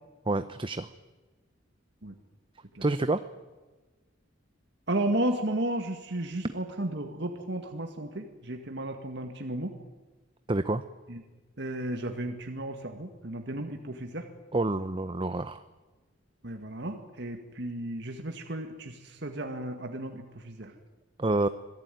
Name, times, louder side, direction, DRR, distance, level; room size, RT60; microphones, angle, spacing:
voice 1, 0.3-0.9 2.8-3.2 10.5-10.8 14.5-15.6 21.2-21.5, right 2 dB, 25° right, 11 dB, 0.8 m, -27 dB
voice 2, 4.9-9.7 11.1-11.2 11.6-14.3 16.4-20.7, right 1 dB, 65° right, 5 dB, 2.0 m, -33 dB
26.0 x 18.5 x 9.3 m, 1.2 s
head